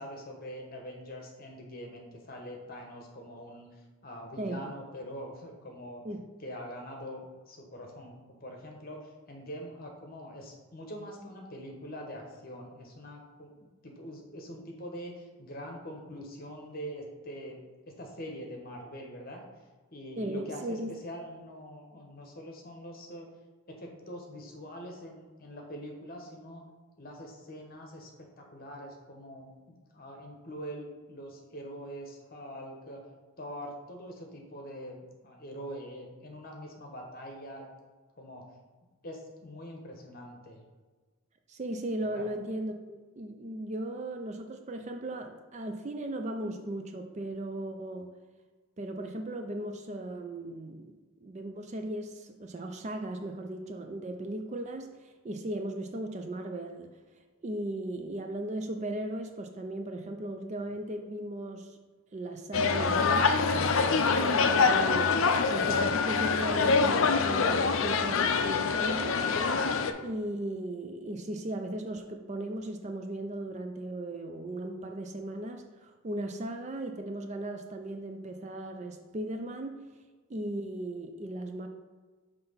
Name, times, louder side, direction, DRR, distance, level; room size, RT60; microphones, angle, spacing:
voice 1, 0.0-3.7 4.0-6.0 6.4-19.4 19.9-23.3 23.7-26.6 27.0-33.0 33.4-37.7 38.2-38.4 39.0-40.6 42.0-42.3, equal, 40° left, 1 dB, 1.0 m, -44 dB
voice 2, 20.2-20.9 41.5-48.1 48.8-56.9 57.4-61.8 62.1-69.2 69.5-69.6 70.0-79.8 80.3-81.7, right 1 dB, 30° right, 5 dB, 0.4 m, -37 dB
sound 1, 62.5-69.9, left 5 dB, 65° left, 0.4 m, -25 dB
5.7 x 3.3 x 5.5 m, 1.3 s
head